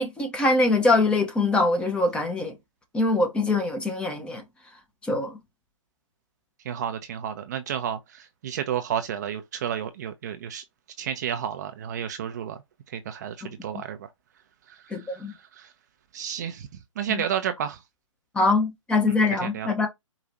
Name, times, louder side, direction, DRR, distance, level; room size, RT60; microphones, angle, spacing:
voice 1, 0.0-2.5 2.9-4.4 5.1-5.4 13.4-13.5 14.9-15.3 18.3-19.9, left 2 dB, 5° left, 0.7 m, -23 dB
voice 2, 6.7-10.6 11.0-12.6 12.9-14.1 14.7-15.7 16.1-16.7 17.0-17.8 19.1-19.2 19.4-19.7, right 9 dB, 35° right, 0.5 m, -31 dB
4.8 x 2.4 x 4.0 m
figure-of-eight pair, 135°, 17 cm